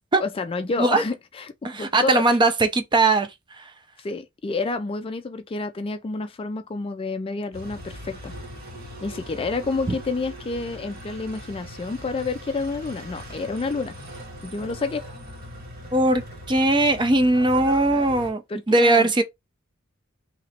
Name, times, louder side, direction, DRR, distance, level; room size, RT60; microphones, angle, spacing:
voice 1, 0.2-2.2 4.0-8.3 9.0-14.0 14.4-15.1 18.5-19.1, left 3 dB, 25° left, 0.3 m, -29 dB
voice 2, 1.6-3.3 3.6-3.7 15.9-18.4 18.7-19.2, right 2 dB, 20° right, 0.6 m, -19 dB
sound 1, 7.5-18.3, equal, 50° right, 1.8 m, -39 dB
3.0 x 2.9 x 4.3 m
head